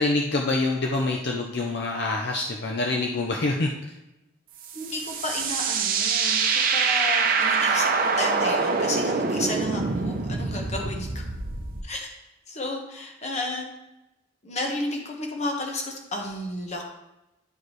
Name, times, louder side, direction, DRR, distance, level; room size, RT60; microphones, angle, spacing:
voice 1, 0.0-3.7, left 2 dB, 60° left, 1 dB, 0.6 m, -26 dB
sound 1, 4.6-11.8, right 5 dB, 50° right, 0.6 m, -25 dB
voice 2, 4.7-11.2 11.8-12.1 12.5-13.7 14.4-16.8, left 2 dB, 35° left, 2 dB, 1.2 m, -32 dB
10.0 x 4.7 x 3.2 m, 0.94 s
head